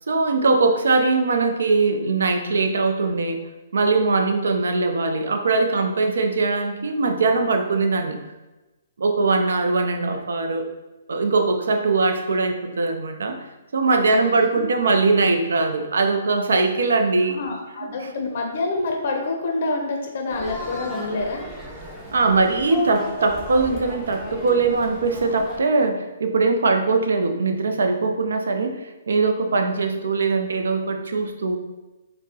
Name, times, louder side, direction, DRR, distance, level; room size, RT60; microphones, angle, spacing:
voice 1, 0.1-3.4 3.7-8.2 9.0-10.7 11.1-13.4 13.7-17.4 22.1-28.8 29.1-31.6, right 3 dB, 75° right, 5 dB, 0.4 m, -21 dB
voice 2, 14.1-15.0 17.3-21.5, left 2 dB, 55° left, 2 dB, 0.5 m, -27 dB
sound 1, 20.3-25.6, equal, 10° right, 0.6 m, -36 dB
4.2 x 2.1 x 2.7 m, 1.1 s
hypercardioid pair, 130°, 0 cm